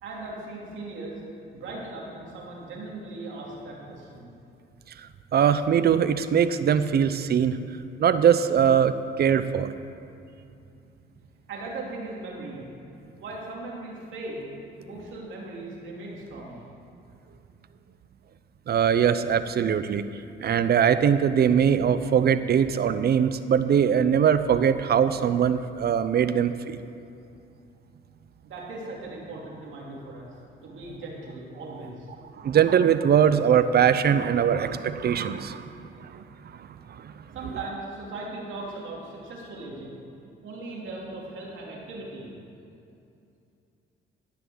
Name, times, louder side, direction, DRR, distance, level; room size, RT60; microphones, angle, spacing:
voice 1, 0.0-1.2 1.5-4.3 11.5-12.6 13.2-14.5 14.8-16.6 28.4-30.2 30.6-32.1 37.3-40.0 40.4-42.3, right 2 dB, 80° right, -3 dB, 3.0 m, -38 dB
voice 2, 5.3-7.6 8.0-9.7 18.7-20.0 20.4-26.8 32.4-35.7 36.1-36.2 37.0-37.1, right 8 dB, 55° right, 12 dB, 0.6 m, -21 dB
14.5 x 5.9 x 7.9 m, 2.6 s
cardioid pair, 90°, 20 cm